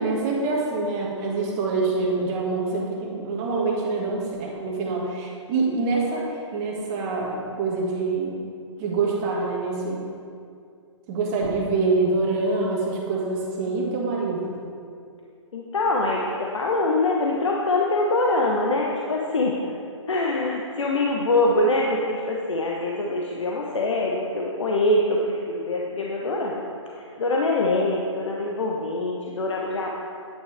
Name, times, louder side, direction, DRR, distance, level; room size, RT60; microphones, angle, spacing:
voice 1, 0.0-6.3 6.5-8.3 8.8-10.0 11.1-14.5, right 3 dB, 30° right, -2 dB, 1.9 m, -25 dB
voice 2, 15.5-19.7 20.1-26.6 27.0-29.9, left 2 dB, 70° left, -2 dB, 1.1 m, -24 dB
9.7 x 9.5 x 3.5 m, 2.4 s
figure-of-eight pair, 130°, 16 cm